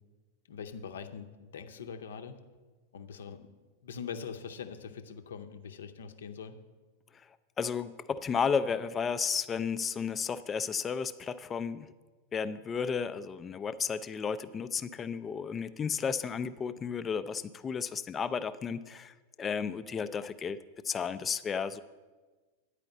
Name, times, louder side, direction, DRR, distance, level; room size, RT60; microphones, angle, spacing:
voice 1, 0.5-2.4 2.9-3.4 3.8-6.6, left 6 dB, 65° left, 8 dB, 0.7 m, -42 dB
voice 2, 7.6-11.9 12.3-20.6 20.8-21.8, left 6 dB, 20° left, 12 dB, 0.3 m, -33 dB
9.6 x 5.0 x 7.9 m, 1.3 s
figure-of-eight pair, 90°, 0 cm